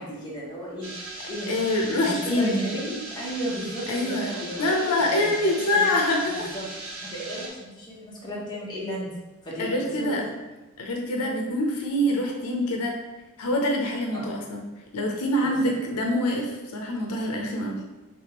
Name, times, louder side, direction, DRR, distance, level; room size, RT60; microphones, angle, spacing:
voice 1, 0.0-1.5 1.9-6.0 6.3-6.7 7.0-9.1 9.4-10.2 14.1-14.3 15.4-15.7, equal, 20° left, -6 dB, 0.9 m, -35 dB
sound 1, 0.8-7.5, right 2 dB, 65° right, 1.0 m, -38 dB
voice 2, 1.2-2.6 3.9-4.3 4.6-6.5 9.6-10.2 10.8-13.0 13.4-14.6 14.9-17.8, left 1 dB, 85° left, 1 dB, 0.6 m, -25 dB
3.4 x 3.2 x 2.9 m, 1.1 s
head